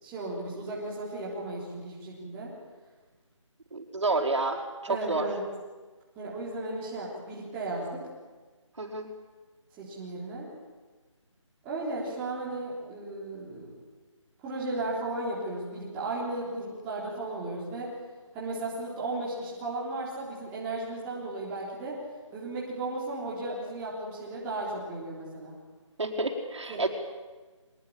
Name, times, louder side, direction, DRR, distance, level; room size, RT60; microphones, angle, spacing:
voice 1, 0.0-2.5 4.9-5.4 6.2-8.0 9.8-10.5 11.6-13.8 14.4-17.9 18.3-22.0 22.3-25.6 26.7-26.9, right 2 dB, 10° right, -6 dB, 3.6 m, -35 dB
voice 2, 3.7-5.3 8.8-9.1 26.0-26.9, right 3 dB, 65° right, 2 dB, 4.8 m, -29 dB
24.5 x 21.0 x 8.8 m, 1.3 s
figure-of-eight pair, 175°, 17 cm